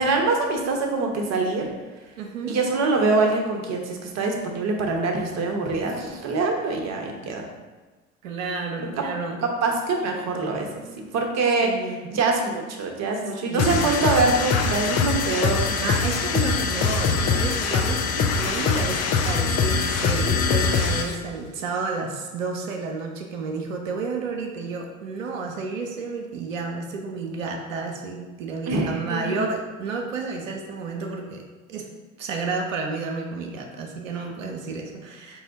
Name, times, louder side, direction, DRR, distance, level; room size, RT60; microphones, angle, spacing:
voice 1, 0.0-1.7 2.5-7.4 8.8-8.9 9.4-10.8 11.1-15.8 28.7-29.5, right 3 dB, 45° right, 2 dB, 0.9 m, -24 dB
voice 2, 2.2-2.6 8.2-9.4 11.6-12.1 13.4-14.2 15.8-31.4 31.7-31.9 32.2-35.4, right 4 dB, 90° right, 2 dB, 0.6 m, -31 dB
sound 1, 13.6-21.2, left 5 dB, 40° left, 0.5 m, -23 dB
4.7 x 2.2 x 3.9 m, 1.2 s
hypercardioid pair, 75°, 38 cm